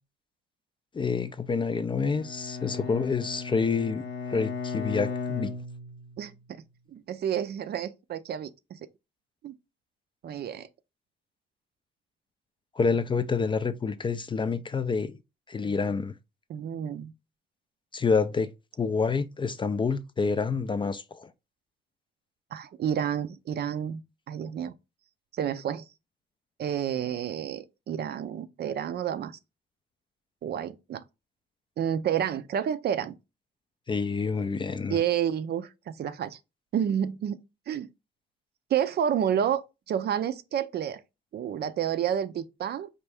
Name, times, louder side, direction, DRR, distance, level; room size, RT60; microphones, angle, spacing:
voice 1, 0.9-5.5 12.8-15.2 15.5-16.1 17.9-18.5 18.8-21.3 33.9-35.0, left 5 dB, 25° left, 0.3 m, -28 dB
Bowed string instrument, 2.0-6.3, left 4 dB, 70° left, 0.6 m, -36 dB
voice 2, 6.2-6.6 6.9-8.8 9.4-9.5 10.2-10.7 16.5-17.1 22.5-24.0 24.3-24.7 25.3-25.9 26.6-29.4 30.4-31.0 31.8-33.1 34.9-36.4 36.7-37.4 37.7-37.9 38.7-39.6 39.9-41.0 41.3-42.9, right 9 dB, 55° right, 0.4 m, -30 dB
4.4 x 2.6 x 3.3 m
cardioid pair, 90°, 20 cm